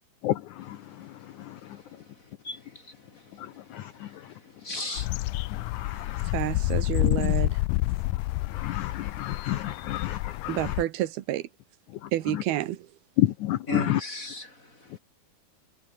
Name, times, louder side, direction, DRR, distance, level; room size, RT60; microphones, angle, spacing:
voice 1, 0.2-0.8 1.5-1.6 3.4-4.1 5.6-6.3 8.5-10.7 13.2-14.0, left 14 dB, 70° left, 2.0 m, -30 dB
voice 2, 1.4-2.0 2.4-2.9 4.0-4.3 4.6-5.1 13.7-15.0, left 2 dB, 20° left, 7.2 m, -37 dB
sound 1, 5.0-10.8, left 19 dB, 85° left, 1.9 m, -28 dB
voice 3, 6.3-7.6 10.5-11.5 12.1-12.9, right 14 dB, 85° right, 3.1 m, -29 dB
omnidirectional pair, 4.4 m